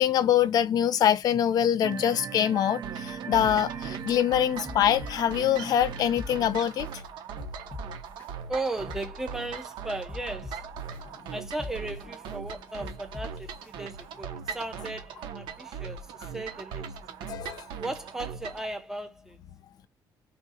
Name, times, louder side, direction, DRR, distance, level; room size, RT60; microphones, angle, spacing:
voice 1, 0.0-6.9 17.3-17.6, left 10 dB, 55° left, 0.5 m, -24 dB
sound 1, 1.8-6.9, right 7 dB, 60° right, 0.6 m, -40 dB
sound 2, 2.8-18.7, right 7 dB, 90° right, 0.9 m, -40 dB
sound 3, 3.4-4.2 4.7-5.6 6.0-6.9 7.4-8.3 8.7-9.7 10.1-11.0 11.5-12.4 12.8-13.7 14.2-14.3, left 4 dB, 20° left, 1.4 m, -43 dB
voice 2, 8.5-10.6 11.3-17.0 17.8-19.4, right 2 dB, 5° right, 0.8 m, -36 dB
3.6 x 2.8 x 4.1 m
cardioid pair, 155°, 8 cm